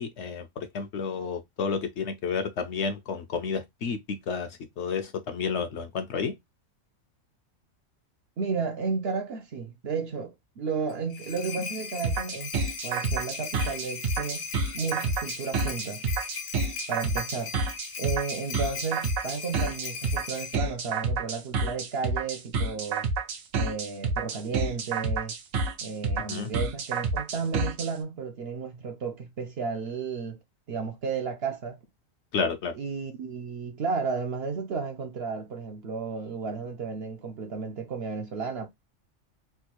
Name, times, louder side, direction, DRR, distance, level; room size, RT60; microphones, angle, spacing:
voice 1, 0.0-6.3 26.3-26.5 32.3-32.8, left 5 dB, 65° left, 0.8 m, -31 dB
voice 2, 8.4-12.5 12.8-14.5 14.7-16.0 16.9-17.5 18.0-23.1 23.5-25.3 25.8-30.4 30.7-31.8 32.7-38.7, right 5 dB, 60° right, 0.7 m, -33 dB
sound 1, 10.9-20.6, left 6 dB, 85° left, 1.1 m, -38 dB
sound 2, 12.0-27.9, right 4 dB, 80° right, 1.1 m, -29 dB
3.5 x 2.4 x 2.8 m
omnidirectional pair, 1.4 m